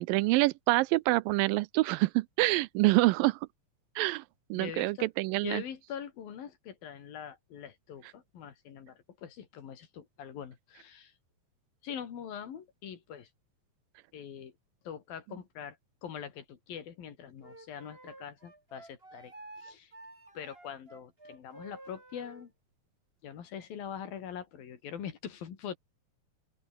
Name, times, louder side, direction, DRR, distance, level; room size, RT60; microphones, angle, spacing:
voice 1, 0.0-3.4 4.0-4.2 4.5-5.6, right 20 dB, 80° right, 2.2 m, -26 dB
voice 2, 4.5-5.1 5.4-11.1 11.8-13.3 14.1-14.5 14.8-15.8 16.0-19.3 19.6-19.9 20.3-22.5 23.2-25.8, left 8 dB, 75° left, 4.5 m, -43 dB
Wind instrument woodwind instrument, 17.4-22.5, right 2 dB, 15° right, 4.1 m, -51 dB
open air
omnidirectional pair, 4.2 m